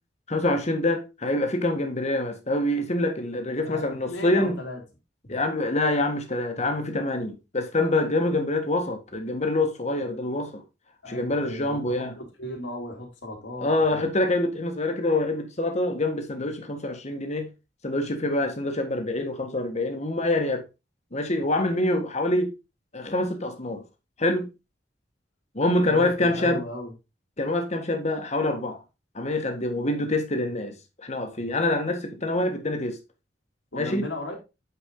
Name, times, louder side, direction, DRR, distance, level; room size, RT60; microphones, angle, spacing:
voice 1, 0.3-4.6 5.3-10.6 11.1-12.2 13.6-17.5 17.8-20.6 21.1-22.5 22.9-23.8 24.2-24.5 25.5-26.6 27.4-28.8 29.1-30.7 31.0-33.0 33.7-34.0, left 2 dB, 40° left, 1.6 m, -26 dB
voice 2, 3.6-4.8 11.0-14.0 25.9-26.9 33.7-34.4, left 1 dB, 90° left, 3.0 m, -36 dB
8.6 x 4.8 x 3.7 m
head